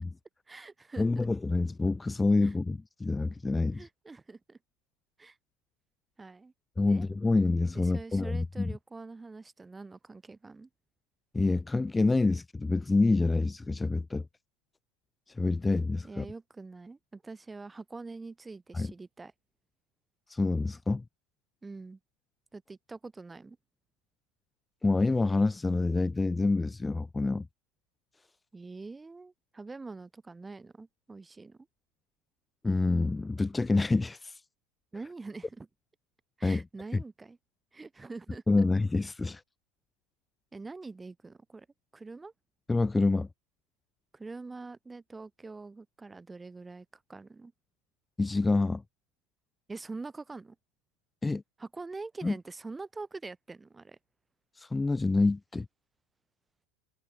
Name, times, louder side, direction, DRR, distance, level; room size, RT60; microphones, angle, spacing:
voice 1, 0.5-1.3 2.4-2.5 3.7-4.6 5.2-5.4 6.2-6.5 6.8-7.0 7.7-10.7 16.0-19.3 21.6-22.0 22.5-23.6 28.5-31.6 34.9-35.7 36.4-37.4 37.7-38.7 40.5-41.7 41.9-42.3 44.1-47.5 49.7-50.6 51.6-54.0, right 3 dB, 15° right, 1.2 m, -44 dB
voice 2, 1.0-3.9 6.8-8.8 11.3-14.2 15.3-16.3 18.7-18.9 20.3-21.0 24.8-27.5 32.6-34.4 36.4-36.6 36.9-37.0 38.5-39.4 42.7-43.3 48.2-48.8 51.2-51.4 52.2-52.3 54.6-55.7, left 3 dB, 15° left, 0.3 m, -27 dB
figure-of-eight pair, 80°, 0 cm